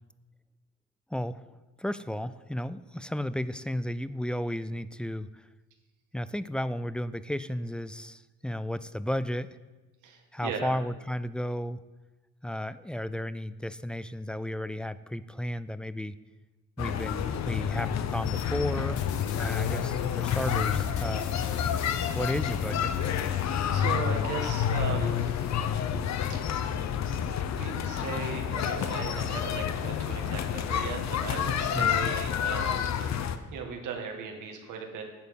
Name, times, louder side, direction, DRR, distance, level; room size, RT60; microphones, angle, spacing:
voice 1, 1.1-1.5 1.8-5.4 6.1-9.6 10.3-11.8 12.4-16.2 16.8-19.0 19.3-21.3 22.1-22.9 31.7-32.0, left 1 dB, 5° left, 15 dB, 0.3 m, -33 dB
voice 2, 10.0-10.7 23.2-25.7 26.3-26.4 27.6-33.2 33.5-35.0, right 5 dB, 85° right, 3 dB, 1.7 m, -38 dB
sound 1, 16.8-33.4, left 8 dB, 65° left, 0.8 m, -29 dB
sound 2, 19.0-24.0, left 7 dB, 80° left, 1.1 m, -42 dB
10.5 x 7.4 x 5.2 m, 1.2 s
cardioid pair, 90°, 30 cm